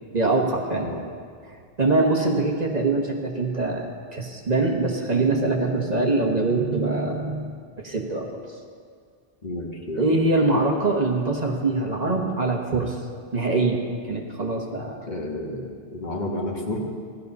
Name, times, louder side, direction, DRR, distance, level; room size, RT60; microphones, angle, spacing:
voice 1, 0.1-0.9 1.5-8.4 10.0-13.0 13.3-15.1, right 3 dB, 40° right, 1 dB, 1.3 m, -24 dB
voice 2, 9.4-10.1 15.1-16.8, left 1 dB, 45° left, 0 dB, 1.5 m, -31 dB
15.5 x 11.0 x 5.5 m, 2.1 s
omnidirectional pair, 1.1 m